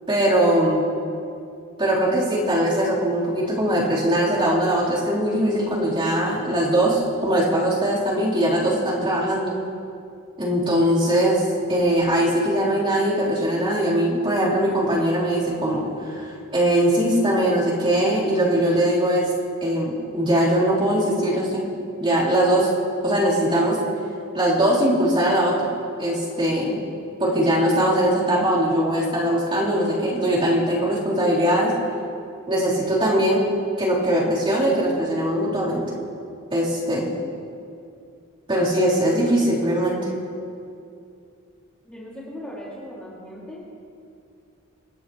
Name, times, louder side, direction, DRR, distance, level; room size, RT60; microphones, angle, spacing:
voice 1, 0.1-0.9 1.8-9.5 10.4-11.4 11.7-19.3 19.6-21.6 22.0-22.7 23.0-23.8 24.3-25.7 26.0-26.8 27.2-31.7 32.5-33.4 33.8-35.8 36.5-37.1 38.5-40.1, right 1 dB, 25° right, -8 dB, 3.8 m, -21 dB
voice 2, 41.8-43.6, equal, 5° left, -9 dB, 2.6 m, -38 dB
28.0 x 10.0 x 3.2 m, 2.5 s
head